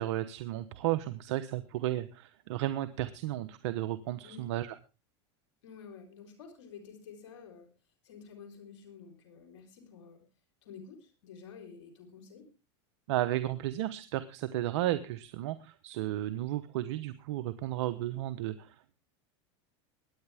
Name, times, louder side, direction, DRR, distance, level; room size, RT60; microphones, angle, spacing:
voice 1, 0.0-4.8 13.1-18.9, right 14 dB, 75° right, 12 dB, 1.0 m, -33 dB
voice 2, 5.6-7.7 8.0-10.2 10.6-12.5, left 6 dB, 85° left, 5 dB, 4.1 m, -50 dB
22.5 x 9.8 x 3.5 m, 0.30 s
supercardioid pair, 115°, 15 cm